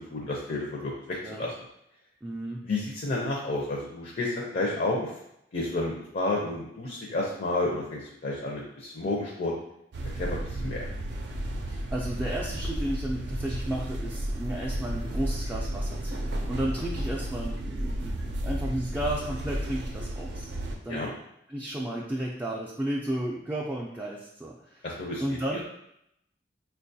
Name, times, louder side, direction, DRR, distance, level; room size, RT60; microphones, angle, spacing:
voice 1, 0.1-0.9 1.4-1.5 2.6-5.1 5.5-9.5 10.2-10.9 20.9-21.1 24.8-25.6, left 2 dB, 55° left, -2 dB, 0.5 m, -31 dB
voice 2, 2.2-2.6 10.6-10.7 11.7-20.5 20.8-21.0 21.5-24.9 25.2-25.6, right 1 dB, 10° right, -4 dB, 0.3 m, -33 dB
sound 1, 9.9-20.8, right 1 dB, 70° right, 0.4 m, -33 dB
4.3 x 2.3 x 2.6 m, 0.79 s
head